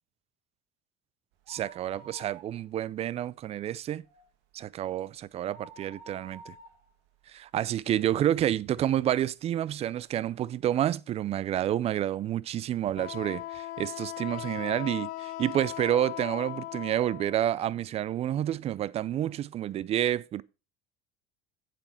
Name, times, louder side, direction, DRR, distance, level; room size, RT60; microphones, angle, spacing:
sound 1, 1.3-3.0 3.3-3.4 3.9-8.3 8.8-8.9 9.7-9.8 10.0-10.1, right 3 dB, 70° right, 2.1 m, -51 dB
voice 1, 1.5-4.0 4.5-6.5 7.3-20.4, right 11 dB, 35° right, 0.4 m, -29 dB
Wind instrument woodwind instrument, 12.9-17.4, left 16 dB, 55° left, 0.5 m, -38 dB
7.8 x 7.3 x 4.4 m
cardioid pair, 120°, 18 cm